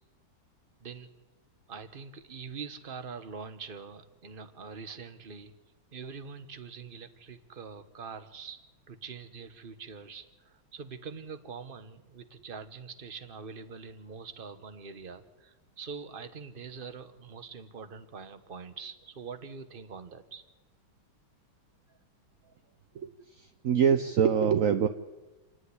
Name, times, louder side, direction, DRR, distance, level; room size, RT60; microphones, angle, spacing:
voice 1, 1.7-5.5 5.9-8.6 8.9-20.4 21.9-22.0 22.4-22.5, right 5 dB, 35° right, 11 dB, 1.0 m, -44 dB
voice 2, 22.9-24.9, right 7 dB, 65° right, 9 dB, 0.8 m, -25 dB
28.5 x 9.6 x 9.8 m, 1.1 s
omnidirectional pair, 2.3 m